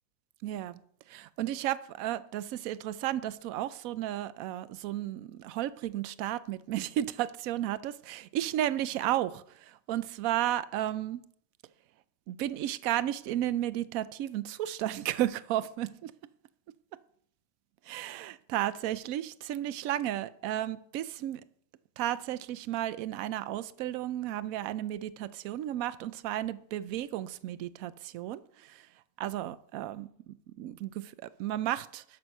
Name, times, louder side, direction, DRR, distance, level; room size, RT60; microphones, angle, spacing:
voice 1, 0.4-0.8 1.1-11.2 12.3-16.1 17.9-21.4 22.0-28.9 29.2-32.0, right 13 dB, 75° right, 1.0 m, -33 dB
12.0 x 6.1 x 5.4 m
omnidirectional pair, 1.5 m